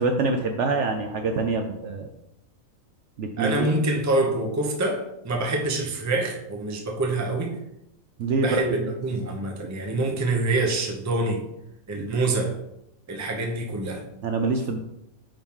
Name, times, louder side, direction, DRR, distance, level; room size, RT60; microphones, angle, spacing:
voice 1, 0.0-2.1 3.2-3.7 8.2-8.8 9.9-10.0 12.0-12.1 14.2-14.8, right 3 dB, 65° right, 5 dB, 0.8 m, -25 dB
voice 2, 3.4-7.6 8.4-11.4 11.9-12.6 13.1-14.0, right 2 dB, 20° right, 1 dB, 0.5 m, -26 dB
8.8 x 3.0 x 3.6 m, 0.86 s
omnidirectional pair, 1.5 m